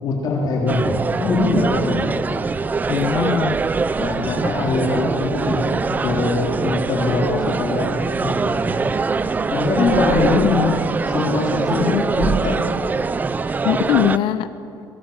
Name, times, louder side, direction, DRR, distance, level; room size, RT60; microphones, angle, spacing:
voice 1, 0.0-2.0 4.0-7.9 8.2-8.6 9.5-10.8 11.1-12.6, left 2 dB, 50° left, -2 dB, 3.8 m, -22 dB
sound 1, 0.7-14.2, right 4 dB, 20° right, 0.6 m, -23 dB
Bird, 2.5-10.2, right 4 dB, 75° right, 3.6 m, -40 dB
voice 2, 2.9-3.6 10.1-10.8 11.8-12.0 13.6-14.5, left 11 dB, 85° left, 12 dB, 1.0 m, -21 dB
29.0 x 23.0 x 7.4 m, 2.8 s
cardioid pair, 160°, 8 cm